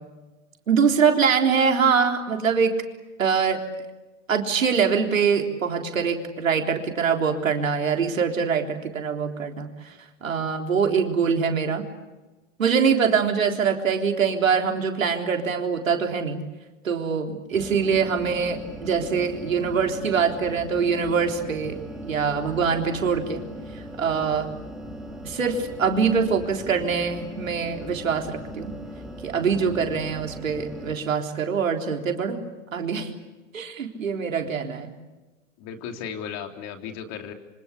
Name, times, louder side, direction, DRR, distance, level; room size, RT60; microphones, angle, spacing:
voice 1, 0.7-2.7 3.2-3.6 4.3-9.7 10.2-11.8 12.6-16.4 16.8-23.4 24.0-24.5 25.2-28.7 29.2-32.4 32.7-33.1 33.5-34.9, right 6 dB, 85° right, 3 dB, 3.7 m, -23 dB
sound 1, 17.5-31.0, equal, ahead, 5.2 m, -39 dB
voice 2, 35.6-37.3, left 7 dB, 40° left, 5 dB, 3.7 m, -35 dB
27.0 x 25.5 x 8.5 m, 1.1 s
hypercardioid pair, 115°, 39 cm